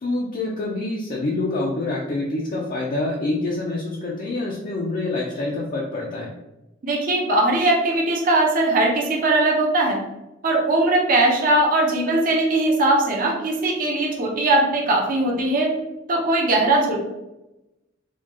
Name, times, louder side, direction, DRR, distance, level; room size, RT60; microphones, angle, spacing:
voice 1, 0.0-6.3, left 2 dB, 45° left, -3 dB, 0.5 m, -26 dB
voice 2, 6.8-10.0 10.4-15.7 16.1-17.0, right 2 dB, 45° right, -1 dB, 0.7 m, -20 dB
4.2 x 2.3 x 2.9 m, 0.96 s
head